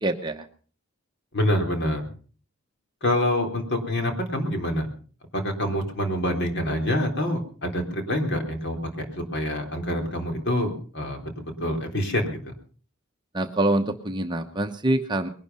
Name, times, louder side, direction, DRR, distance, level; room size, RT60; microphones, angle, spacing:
voice 1, 0.0-0.5 13.3-15.3, right 1 dB, 20° right, 5 dB, 0.9 m, -25 dB
voice 2, 1.3-2.0 3.0-4.9 5.3-12.4, left 1 dB, 55° left, 4 dB, 3.7 m, -26 dB
21.0 x 12.0 x 5.5 m, 0.42 s
head